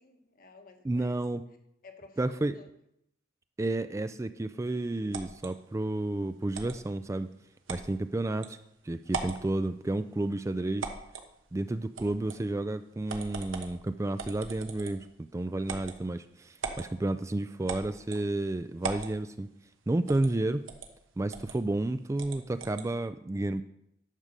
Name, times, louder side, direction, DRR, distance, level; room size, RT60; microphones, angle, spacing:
voice 1, 0.0-1.2 1.8-2.7, left 3 dB, 45° left, 6 dB, 1.2 m, -53 dB
voice 2, 0.8-1.4 2.2-2.5 3.6-7.3 7.7-8.6 8.8-10.9 11.5-19.5 19.9-20.6 21.2-23.6, right 2 dB, 15° right, 11 dB, 0.3 m, -31 dB
sound 1, 5.1-5.5 6.5-6.8 7.7-7.9 8.4-8.5 9.0-9.4 10.8-11.3 12.0-12.4 13.1-13.7 14.2-15.1 15.6-16.0 16.6-16.9 17.7-18.2 18.8-19.1 20.1-20.3 20.7-20.9 21.3-21.5 22.2-22.9, right 4 dB, 85° right, 1.2 m, -38 dB
11.0 x 4.9 x 6.6 m, 0.77 s
head